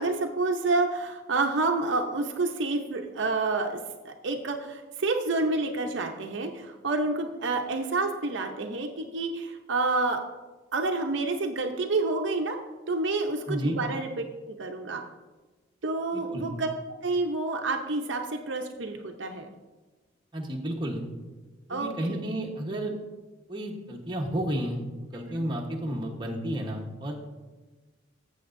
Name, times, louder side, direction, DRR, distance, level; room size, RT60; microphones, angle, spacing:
voice 1, 0.0-3.8 4.0-10.2 10.7-12.6 12.9-14.1 14.4-15.0 15.8-16.7 17.0-19.5 21.7-22.2 25.3-25.4, right 3 dB, 65° right, 3 dB, 0.7 m, -28 dB
voice 2, 13.5-13.8 16.1-16.5 20.3-21.0 21.7-22.9 23.5-27.1, right 1 dB, 25° right, -1 dB, 1.1 m, -32 dB
14.5 x 7.2 x 2.6 m, 1.2 s
head